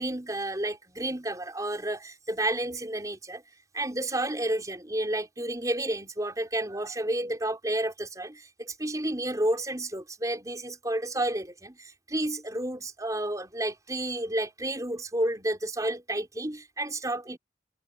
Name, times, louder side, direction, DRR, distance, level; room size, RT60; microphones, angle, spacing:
voice 1, 0.0-3.4 3.7-17.4, right 1 dB, 20° right, 4.1 m, -31 dB
head